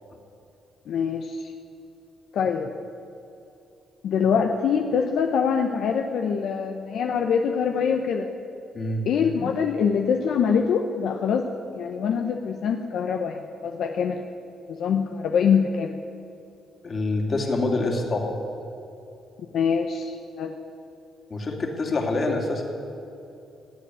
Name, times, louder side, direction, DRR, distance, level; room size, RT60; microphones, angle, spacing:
voice 1, 0.9-1.5 2.3-2.7 4.0-8.3 9.1-11.5 11.7-14.2 14.7-15.9 19.5-20.5, left 6 dB, 70° left, 4 dB, 0.9 m, -24 dB
voice 2, 8.7-9.1 16.8-18.3 21.3-22.6, left 2 dB, 40° left, 1 dB, 2.9 m, -26 dB
17.0 x 8.5 x 9.6 m, 2.7 s
cardioid pair, 90°, 0 cm